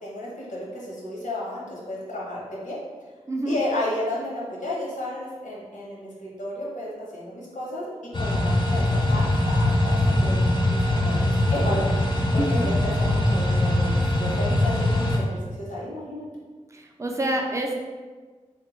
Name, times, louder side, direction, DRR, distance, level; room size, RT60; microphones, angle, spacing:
voice 1, 0.0-2.8 3.4-7.8 8.2-10.4 10.6-16.3, left 1 dB, 75° left, -5 dB, 0.9 m, -32 dB
sound 1, 8.1-15.2, left 1 dB, 35° left, 0.5 m, -22 dB
voice 2, 16.7-17.9, right 1 dB, 25° right, 1 dB, 0.5 m, -27 dB
3.1 x 2.2 x 3.1 m, 1.4 s
cardioid pair, 40°, 13 cm